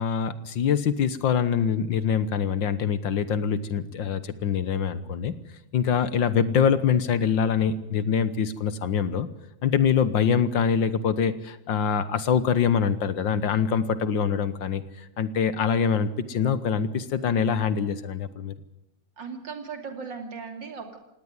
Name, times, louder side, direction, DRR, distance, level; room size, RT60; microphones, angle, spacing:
voice 1, 0.0-5.3 5.7-9.3 9.6-18.5, left 7 dB, 65° left, 14 dB, 1.8 m, -24 dB
voice 2, 19.2-21.0, right 5 dB, 60° right, 6 dB, 3.4 m, -37 dB
18.5 x 18.0 x 9.6 m, 0.90 s
omnidirectional pair, 2.2 m